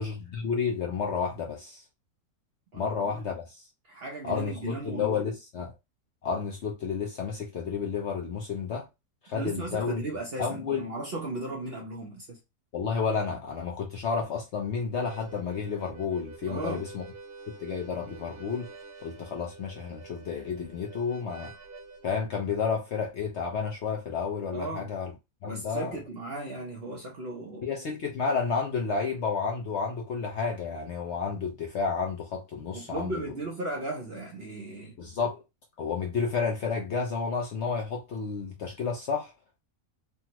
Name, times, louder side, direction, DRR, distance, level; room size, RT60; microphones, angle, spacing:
voice 1, 0.0-1.8 2.7-3.6 4.2-5.7 6.2-8.9 9.2-10.0 10.4-10.8 12.7-17.0 17.5-18.7 19.0-21.5 22.0-25.1 25.4-26.0 27.6-33.2 35.0-35.4 35.8-39.3, left 5 dB, 60° left, 0.8 m, -31 dB
voice 2, 2.7-3.3 3.9-5.2 9.3-12.4 16.5-16.8 24.5-24.9 25.5-27.7 32.7-34.9, right 2 dB, 50° right, 0.8 m, -36 dB
Harmonica, 14.8-22.2, right 4 dB, 85° right, 1.2 m, -48 dB
3.4 x 2.1 x 2.9 m
omnidirectional pair, 1.6 m